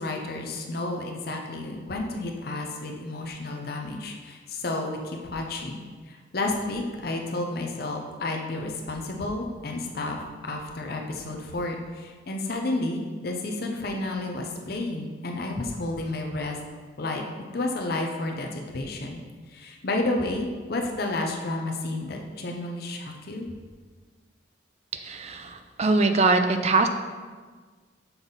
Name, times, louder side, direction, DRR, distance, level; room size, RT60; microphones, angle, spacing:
voice 1, 0.0-5.8 6.1-16.6 17.0-17.2 17.5-19.2 19.5-23.5, left 2 dB, 50° left, 2 dB, 0.7 m, -31 dB
voice 2, 24.9-26.9, right 3 dB, 35° right, 7 dB, 0.4 m, -22 dB
6.9 x 5.5 x 4.0 m, 1.5 s
head